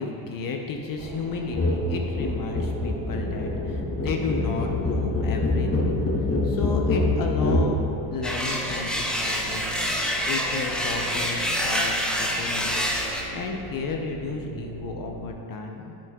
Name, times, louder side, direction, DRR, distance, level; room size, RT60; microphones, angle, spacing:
voice 1, 0.0-6.0 6.4-7.8 8.1-10.0 10.3-12.8 13.3-16.0, left 5 dB, 45° left, 2 dB, 0.6 m, -33 dB
sound 1, 1.0-15.3, right 2 dB, 60° right, 0.7 m, -39 dB
sound 2, 1.5-1.8 2.1-7.7, left 2 dB, 30° left, 1.0 m, -25 dB
sound 3, 8.2-13.2, equal, ahead, 0.6 m, -27 dB
7.7 x 7.2 x 2.3 m, 2.7 s
cardioid pair, 110°, 47 cm